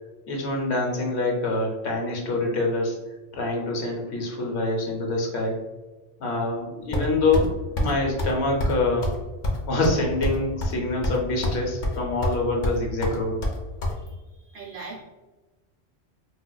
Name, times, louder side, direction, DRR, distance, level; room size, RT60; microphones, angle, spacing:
voice 1, 0.3-3.0 3.3-5.6 6.2-9.1 9.7-13.4, left 2 dB, 70° left, -1 dB, 1.0 m, -25 dB
sound 1, 6.9-7.5 7.8-7.9 8.2-8.3 8.6-8.8 9.0-9.2 9.4-10.8 11.0-11.6 11.8-12.4 12.6-13.9, left 1 dB, 50° left, 0.7 m, -25 dB
voice 2, 13.8-15.0, right 3 dB, 70° right, -2 dB, 0.8 m, -42 dB
4.2 x 2.3 x 2.2 m, 1.2 s
omnidirectional pair, 1.2 m